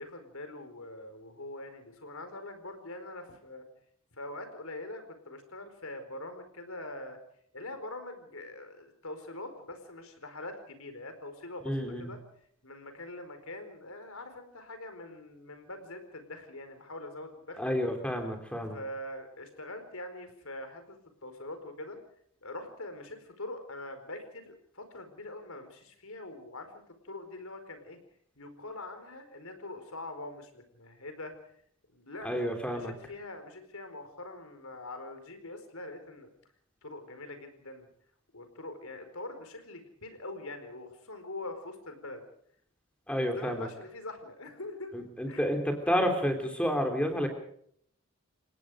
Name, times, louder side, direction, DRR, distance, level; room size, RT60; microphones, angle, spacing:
voice 1, 0.0-3.6 4.1-7.2 7.5-12.2 12.6-17.6 18.7-22.0 22.4-28.0 28.3-31.3 31.9-36.3 36.8-37.9 38.3-42.2 43.3-44.9 45.3-45.4, left 2 dB, 75° left, 8 dB, 4.7 m, -43 dB
voice 2, 11.6-12.1 17.6-18.8 32.2-32.9 43.1-43.7 44.9-47.3, equal, 5° left, 4 dB, 3.5 m, -30 dB
29.5 x 18.0 x 5.0 m, 0.66 s
head